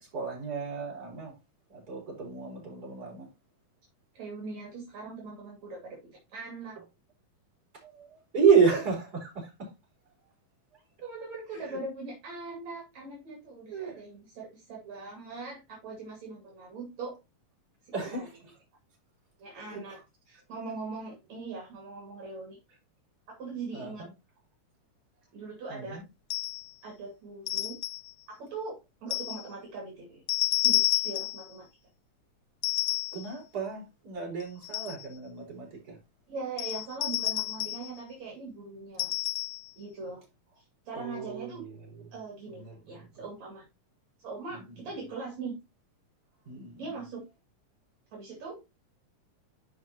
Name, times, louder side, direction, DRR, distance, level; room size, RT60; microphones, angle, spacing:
voice 1, 0.0-1.3 1.7-3.3 7.8-9.7 11.7-11.8 13.7-14.0 17.9-18.3 19.6-20.0 23.7-24.1 25.7-26.0 33.1-36.0 40.9-42.1 42.5-43.1 44.5-44.8 46.4-46.9, right 6 dB, 30° right, 4.9 m, -31 dB
voice 2, 4.1-6.8 11.0-17.2 17.8-18.3 19.4-20.0 20.3-22.6 23.3-24.1 25.3-26.0 26.8-27.8 28.3-30.2 30.6-31.7 36.3-39.1 39.8-40.2 40.6-41.6 42.1-43.6 44.2-45.6 46.8-47.2 48.1-48.8, right 3 dB, 60° right, 3.7 m, -41 dB
sound 1, 26.3-26.7 27.5-28.1 29.1-29.4 30.3-31.5 32.6-33.3 34.4-35.1 36.6-37.9 39.0-39.7, left 21 dB, 80° left, 1.5 m, -30 dB
12.5 x 5.5 x 2.9 m
omnidirectional pair, 3.7 m